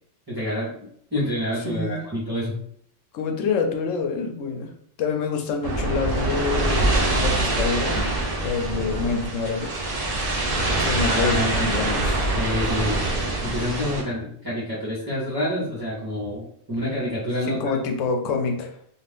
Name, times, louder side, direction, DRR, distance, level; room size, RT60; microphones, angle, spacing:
voice 1, 0.3-0.7 1.1-2.6 11.0-11.7 12.3-13.0 13.4-17.6, left 1 dB, 20° right, -8 dB, 0.9 m, -28 dB
voice 2, 1.6-2.0 3.1-4.7 5.0-8.0 8.4-9.8 10.7-12.3 17.5-18.8, left 4 dB, 90° left, 4 dB, 0.9 m, -27 dB
sound 1, 5.6-14.0, right 2 dB, 45° right, 0.5 m, -24 dB
2.5 x 2.4 x 3.4 m, 0.66 s
omnidirectional pair, 1.3 m